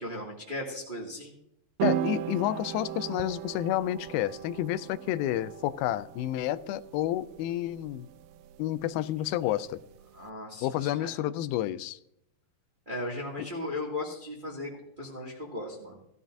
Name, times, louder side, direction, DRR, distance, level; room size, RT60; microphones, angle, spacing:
voice 1, 0.0-1.3 9.4-9.5 10.1-11.1 12.8-14.7 15.0-16.0, left 1 dB, 20° right, -2 dB, 1.6 m, -37 dB
voice 2, 1.8-8.1 8.6-9.8 10.6-12.0, left 13 dB, 90° left, 13 dB, 2.4 m, -30 dB
sound 1, 1.8-10.2, right 12 dB, 80° right, 2.0 m, -37 dB
17.0 x 12.5 x 2.6 m, 0.77 s
omnidirectional pair, 4.1 m